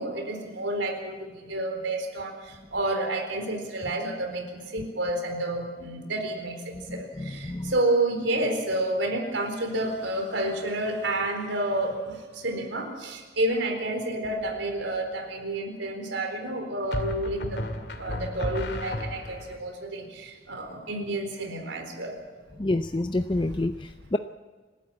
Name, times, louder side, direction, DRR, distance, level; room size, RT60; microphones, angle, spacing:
voice 1, 0.0-17.6 17.9-22.2, right 1 dB, 80° right, 5 dB, 4.2 m, -30 dB
voice 2, 6.9-7.7 22.6-24.2, left 2 dB, 25° left, 8 dB, 0.6 m, -28 dB
sound 1, 14.2-14.7 16.9-19.6, left 1 dB, 65° left, 2.2 m, -33 dB
28.0 x 12.5 x 8.5 m, 1.4 s
head